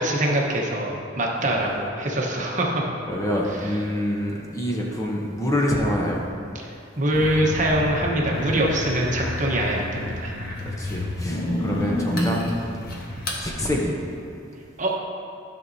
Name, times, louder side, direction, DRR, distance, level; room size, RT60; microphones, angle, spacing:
voice 1, 0.0-2.8 7.0-10.3 14.8-14.9, right 1 dB, 40° right, -1 dB, 1.0 m, -23 dB
voice 2, 3.1-6.2 10.6-12.4 13.4-13.9, left 1 dB, 15° left, -2 dB, 0.8 m, -26 dB
sound 1, 7.1-13.4, left 1 dB, 50° left, 1.2 m, -29 dB
13.5 x 6.1 x 2.7 m, 2.5 s
head